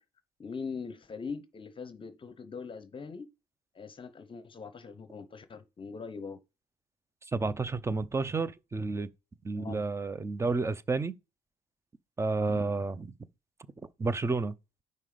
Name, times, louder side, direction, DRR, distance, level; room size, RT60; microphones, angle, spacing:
voice 1, 0.4-3.3 3.7-6.4 9.5-9.8 12.4-12.7, left 5 dB, 30° left, 0.8 m, -42 dB
voice 2, 7.3-9.1 9.4-11.1 12.2-13.1 14.0-14.5, right 3 dB, 15° right, 0.6 m, -30 dB
5.6 x 5.3 x 5.0 m
cardioid pair, 110°, 17 cm